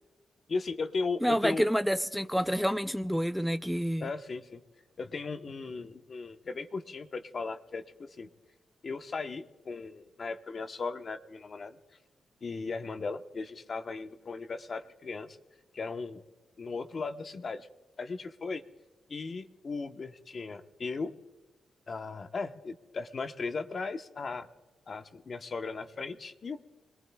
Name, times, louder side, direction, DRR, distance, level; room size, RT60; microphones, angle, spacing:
voice 1, 0.5-1.7 4.0-4.6 5.0-7.8 8.2-8.3 8.8-11.8 12.4-15.4 15.7-16.2 16.6-17.7 18.0-18.6 19.1-21.1 21.9-24.5 24.9-26.6, left 4 dB, 45° left, 7 dB, 1.0 m, -37 dB
voice 2, 1.2-4.1, equal, ahead, 9 dB, 0.5 m, -28 dB
26.0 x 20.5 x 2.3 m, 1.3 s
cardioid pair, 100°, 0 cm